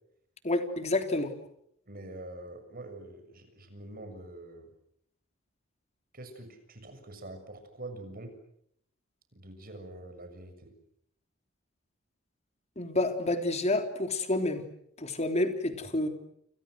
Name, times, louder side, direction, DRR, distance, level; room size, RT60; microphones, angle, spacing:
voice 1, 0.4-1.3 12.8-14.6 15.0-16.1, left 2 dB, 35° left, 6 dB, 3.5 m, -29 dB
voice 2, 1.9-4.7 6.1-8.4 9.3-10.7, right 2 dB, 45° right, 8 dB, 6.9 m, -45 dB
29.5 x 29.0 x 6.4 m, 0.72 s
head